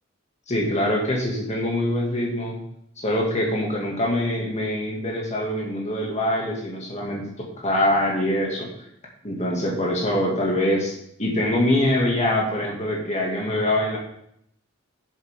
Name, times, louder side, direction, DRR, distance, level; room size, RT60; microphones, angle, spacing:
voice 1, 0.5-2.6 3.0-8.7 9.2-10.9 11.2-14.0, left 1 dB, 35° left, -2 dB, 2.2 m, -24 dB
10.0 x 7.5 x 3.7 m, 0.74 s
head